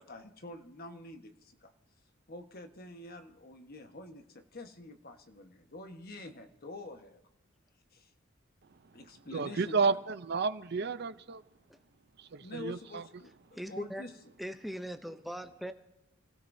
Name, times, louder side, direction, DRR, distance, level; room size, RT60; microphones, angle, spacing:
voice 1, 0.0-1.3 1.6-1.7 2.3-7.2 7.9-8.1 8.9-9.8 12.4-14.1, left 2 dB, 50° left, 1.3 m, -47 dB
voice 2, 9.3-11.4 12.2-13.0, right 4 dB, 55° right, 0.6 m, -31 dB
voice 3, 13.5-14.1 14.4-15.7, equal, ahead, 0.6 m, -40 dB
30.0 x 16.5 x 2.7 m
head